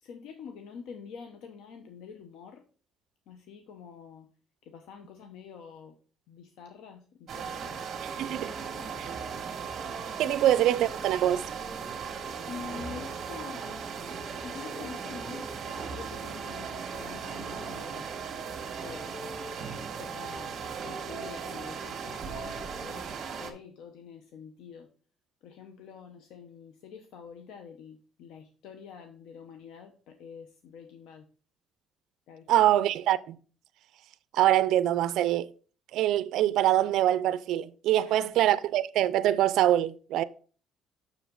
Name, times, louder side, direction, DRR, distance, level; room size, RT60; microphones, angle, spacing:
voice 1, 0.0-2.6 3.3-4.3 4.6-5.9 6.3-8.0 8.3-8.9 10.3-10.4 12.5-13.8 14.1-14.2 14.4-18.1 18.8-19.1 19.5-24.9 25.4-31.3 32.3-32.7 38.0-38.3, left 6 dB, 80° left, 0.9 m, -46 dB
sound 1, 7.3-23.5, right 6 dB, 45° right, 1.9 m, -37 dB
voice 2, 8.0-8.5 10.2-11.4 32.5-33.4 34.3-35.5 35.9-40.2, right 12 dB, 70° right, 0.5 m, -24 dB
7.2 x 6.5 x 3.9 m
cardioid pair, 130°, 0 cm